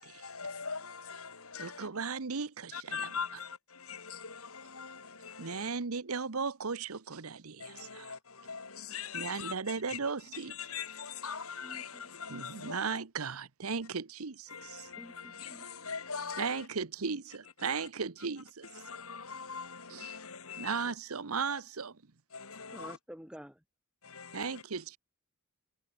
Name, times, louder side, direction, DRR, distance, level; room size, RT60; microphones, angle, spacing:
voice 1, 0.0-2.0 2.7-5.7 7.6-9.5 9.9-10.0 10.3-13.0 14.5-16.7 17.7-17.9 18.6-20.9 21.5-21.6 22.3-23.0 24.0-24.6, left 6 dB, 85° left, 4.2 m, -42 dB
voice 2, 1.6-3.1 5.4-8.1 9.1-10.6 12.3-14.9 16.4-18.7 19.9-20.2 20.6-22.0 24.3-25.0, right 5 dB, 85° right, 1.1 m, -36 dB
voice 3, 11.6-12.1 15.0-15.7 22.7-23.6, equal, 5° right, 7.8 m, -49 dB
head